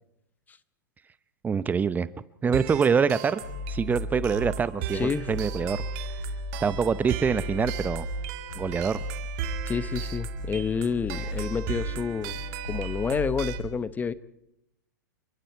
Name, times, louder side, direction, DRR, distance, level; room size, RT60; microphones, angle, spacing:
voice 1, 1.4-2.1 2.4-3.4 3.7-5.8 6.6-8.1 8.5-9.0, right 6 dB, 15° right, 16 dB, 0.8 m, -25 dB
sound 1, 2.5-13.6, right 14 dB, 50° right, 2.1 m, -38 dB
sound 2, 3.4-13.6, left 1 dB, 75° left, 4.8 m, -35 dB
voice 2, 4.9-5.3 9.7-12.4 12.7-14.1, left 5 dB, 15° left, 16 dB, 0.8 m, -29 dB
29.5 x 24.0 x 4.6 m, 0.82 s
hypercardioid pair, 110°, 10 cm